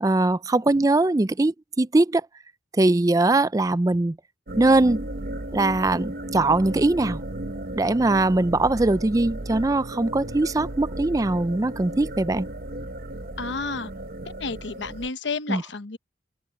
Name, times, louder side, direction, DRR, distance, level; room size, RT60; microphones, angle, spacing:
voice 1, 0.0-2.2 2.8-4.2 4.6-5.0 5.5-7.2 7.8-12.5 15.5-15.6, right 2 dB, 20° right, 0.4 m, -21 dB
sound 1, 4.5-15.1, right 1 dB, 50° right, 0.9 m, -35 dB
voice 2, 13.4-13.9 14.4-16.0, left 4 dB, 80° left, 1.1 m, -31 dB
open air
head